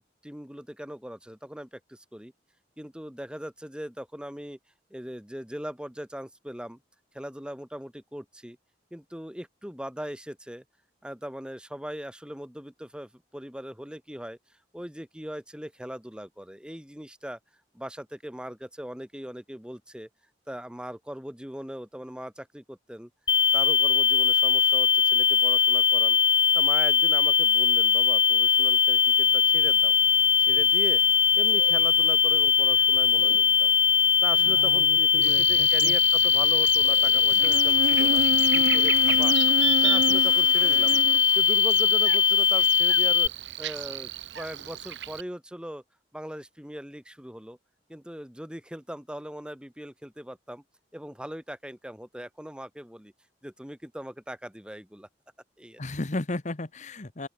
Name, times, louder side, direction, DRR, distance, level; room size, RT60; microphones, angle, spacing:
voice 1, 0.0-2.3 2.8-4.6 4.9-6.8 7.1-8.6 8.9-10.6 11.0-14.4 14.7-17.4 17.7-20.1 20.5-23.1 23.5-26.2 26.5-30.0 30.4-31.0 31.4-33.7 34.2-38.2 38.5-39.4 39.8-41.0 41.4-43.3 43.6-45.8 46.1-47.6 47.9-50.6 50.9-53.1 53.4-55.1 55.6-55.9, equal, 5° right, 2.0 m, -40 dB
sound 1, 23.3-43.3, left 7 dB, 25° left, 0.5 m, -21 dB
sound 2, 29.2-39.4, left 2 dB, 60° left, 3.2 m, -49 dB
voice 2, 34.4-35.9 55.8-57.3, left 2 dB, 40° left, 1.2 m, -35 dB
Buzz, 35.2-45.2, right 6 dB, 75° right, 0.9 m, -31 dB
open air
head